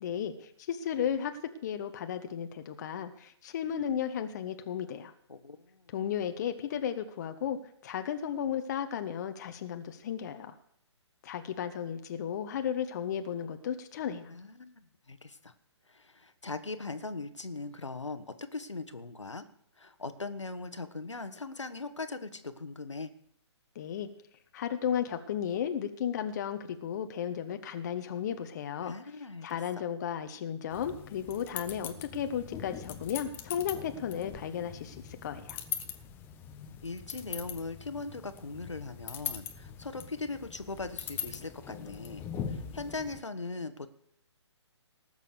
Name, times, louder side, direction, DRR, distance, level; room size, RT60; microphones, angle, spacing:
voice 1, 0.0-1.4 1.6-5.1 5.9-7.6 7.8-10.5 11.2-14.3 23.7-24.1 24.5-28.9 29.4-35.0 35.2-35.6, left 8 dB, 35° left, 8 dB, 1.0 m, -34 dB
voice 2, 5.3-6.0 14.3-15.5 15.9-19.4 19.8-23.1 28.8-29.6 36.8-43.9, left 3 dB, 80° left, 10 dB, 1.3 m, -40 dB
sound 1, 30.7-43.2, left 8 dB, 15° left, 0.8 m, -42 dB
18.5 x 6.8 x 6.7 m, 0.70 s
figure-of-eight pair, 135°, 15 cm